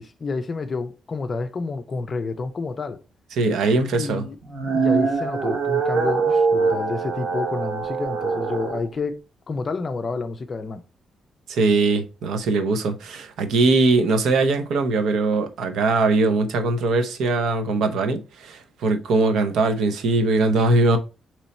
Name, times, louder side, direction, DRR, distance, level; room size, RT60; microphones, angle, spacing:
voice 1, 0.0-3.0 4.0-4.4 4.7-10.8, left 4 dB, 30° left, 0.4 m, -29 dB
voice 2, 3.4-4.2 11.5-21.0, right 3 dB, 80° right, 0.7 m, -21 dB
sound 1, 4.4-8.8, right 4 dB, 55° right, 1.0 m, -23 dB
4.2 x 3.0 x 4.1 m
cardioid pair, 155°, 0 cm